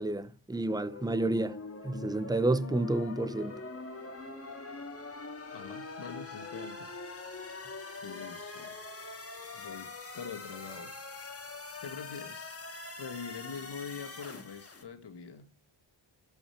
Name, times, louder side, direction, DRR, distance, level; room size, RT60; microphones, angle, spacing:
voice 1, 0.0-1.6 1.8-3.6, right 2 dB, 10° right, 0.6 m, -30 dB
sound 1, 0.7-14.8, left 3 dB, 30° left, 1.8 m, -43 dB
voice 2, 5.5-6.9 8.0-8.8 9.5-10.9 11.8-12.6 13.0-15.5, left 6 dB, 60° left, 1.8 m, -44 dB
12.5 x 5.7 x 7.1 m
wide cardioid pair, 155°, 47 cm